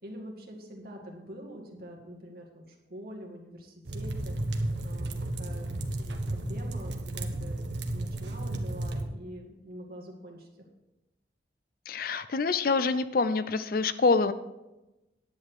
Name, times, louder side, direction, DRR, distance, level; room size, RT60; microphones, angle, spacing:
voice 1, 0.0-4.4 4.8-5.7 6.0-10.5, equal, 55° right, 0 dB, 2.2 m, -45 dB
sound 1, 3.9-9.0, right 1 dB, 75° right, 1.1 m, -33 dB
voice 2, 11.9-14.3, left 4 dB, 50° left, 13 dB, 0.5 m, -26 dB
10.5 x 8.7 x 4.9 m, 0.99 s
head